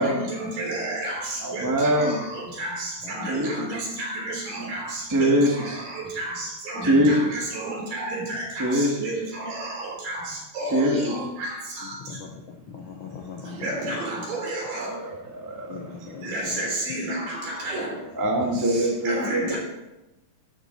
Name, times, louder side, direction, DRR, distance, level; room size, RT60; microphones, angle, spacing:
voice 1, 0.0-12.2 13.4-15.0 16.2-18.1 18.5-19.6, right 1 dB, 75° right, -2 dB, 5.3 m, -31 dB
voice 2, 1.4-2.2 3.3-3.5 5.1-5.8 6.8-7.3 8.6-9.1 10.7-11.1 14.8-15.8 18.1-19.6, equal, 10° right, 0 dB, 1.1 m, -23 dB
voice 3, 11.8-14.0 15.7-16.7, left 5 dB, 70° left, 2 dB, 1.2 m, -40 dB
13.0 x 11.0 x 4.1 m, 0.96 s
omnidirectional pair, 3.9 m